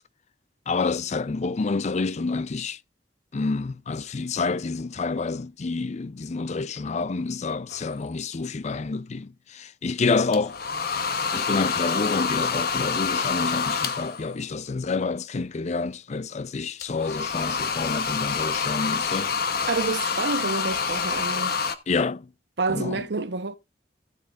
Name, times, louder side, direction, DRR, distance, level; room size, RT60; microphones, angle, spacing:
voice 1, 0.7-2.8 3.3-10.6 11.3-19.3 21.9-22.3 22.7-23.0, left 4 dB, 40° left, 0.5 m, -28 dB
sound 1, 7.7-8.0 10.3-14.3 16.8-21.7, left 5 dB, 60° left, 1.0 m, -27 dB
voice 2, 19.6-21.6 22.6-23.6, right 3 dB, 70° right, 0.9 m, -28 dB
16.0 x 8.1 x 2.5 m
head